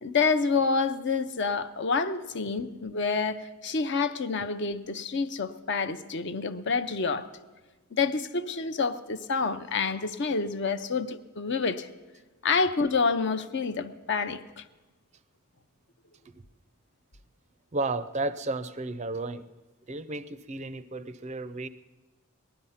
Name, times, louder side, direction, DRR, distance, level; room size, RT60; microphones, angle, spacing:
voice 1, 0.0-7.3 7.9-11.9 12.4-14.6, left 4 dB, 50° left, 11 dB, 0.6 m, -28 dB
voice 2, 17.7-19.4 19.9-21.7, right 2 dB, 30° right, 14 dB, 0.5 m, -33 dB
19.0 x 12.0 x 5.7 m, 1.2 s
head